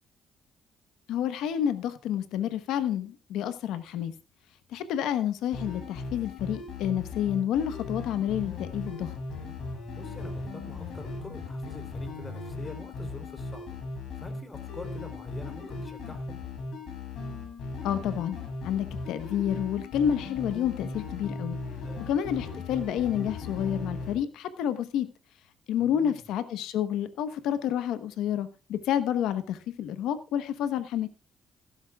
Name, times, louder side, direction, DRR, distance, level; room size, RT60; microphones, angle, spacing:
voice 1, 1.1-4.1 4.7-9.1 17.8-18.4 18.6-21.6 22.1-25.1 25.7-31.1, left 10 dB, 90° left, 1.1 m, -29 dB
sound 1, 5.5-24.2, left 3 dB, 70° left, 7.1 m, -37 dB
voice 2, 9.9-13.8 14.2-16.4 22.0-22.1 25.8-26.2, left 2 dB, 25° left, 3.4 m, -45 dB
15.5 x 12.5 x 2.4 m
cardioid pair, 90°, 0 cm